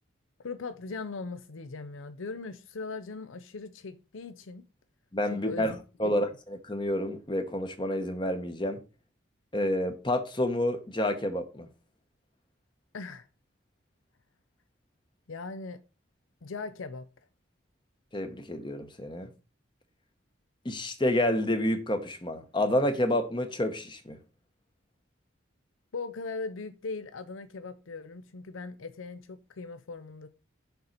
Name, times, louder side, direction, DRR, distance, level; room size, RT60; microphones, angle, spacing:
voice 1, 0.4-4.6 5.3-5.8 6.0-6.1 12.9-13.3 15.3-15.8 16.4-17.1 25.9-30.3, left 4 dB, 80° left, 0.6 m, -39 dB
voice 2, 5.1-5.7 6.0-6.3 6.7-8.8 9.5-11.7 18.1-19.3 20.6-24.2, left 1 dB, 25° left, 0.9 m, -29 dB
6.9 x 4.2 x 6.5 m
head